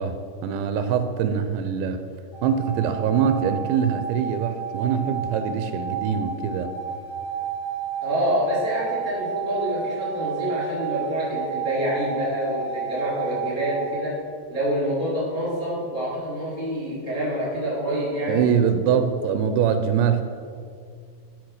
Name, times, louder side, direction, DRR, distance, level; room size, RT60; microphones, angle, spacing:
voice 1, 0.0-2.1 2.4-6.7 18.3-20.2, right 7 dB, 85° right, 8 dB, 2.6 m, -23 dB
sound 1, 2.3-14.0, right 7 dB, 55° left, 3.5 m, -31 dB
voice 2, 8.0-14.2 14.5-18.5 19.1-19.2, equal, 30° left, -7 dB, 1.4 m, -27 dB
12.5 x 4.2 x 6.3 m, 2.2 s
omnidirectional pair, 5.2 m